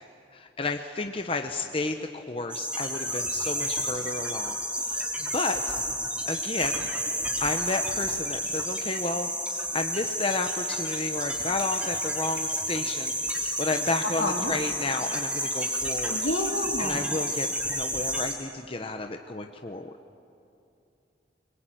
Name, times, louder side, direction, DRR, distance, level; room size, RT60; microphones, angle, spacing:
voice 1, 0.3-5.7 6.3-6.9 7.4-16.2 16.5-19.9, left 3 dB, 30° left, 5 dB, 0.9 m, -32 dB
sound 1, 2.5-18.3, equal, 5° right, 3.5 m, -30 dB
voice 2, 14.2-14.5 16.1-17.0, left 2 dB, 70° left, 3 dB, 2.7 m, -29 dB
24.5 x 22.5 x 9.2 m, 2.6 s
head